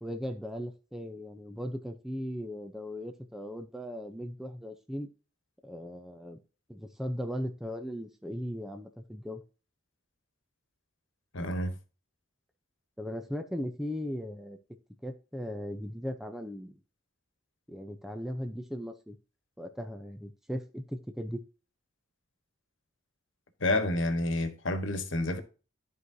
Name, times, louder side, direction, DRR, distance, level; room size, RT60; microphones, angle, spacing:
voice 1, 0.0-5.1 5.6-6.4 6.7-9.4 13.0-14.6 15.0-16.8 17.7-19.2 19.6-21.4, equal, ahead, 0.7 m, -38 dB
voice 2, 11.3-11.8 23.6-25.4, left 1 dB, 70° left, 1.4 m, -29 dB
13.5 x 4.7 x 2.8 m
head